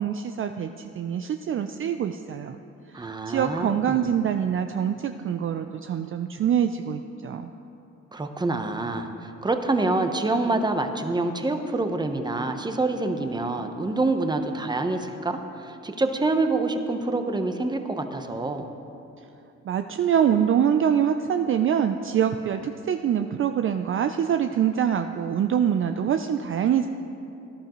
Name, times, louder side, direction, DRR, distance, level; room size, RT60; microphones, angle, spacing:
voice 1, 0.0-2.6 2.9-7.5 19.7-26.9, right 8 dB, 45° right, 7 dB, 0.4 m, -25 dB
voice 2, 2.9-4.1 8.1-18.7, right 2 dB, 15° right, 6 dB, 0.9 m, -26 dB
17.5 x 11.5 x 3.1 m, 2.8 s
cardioid pair, 90°, 30 cm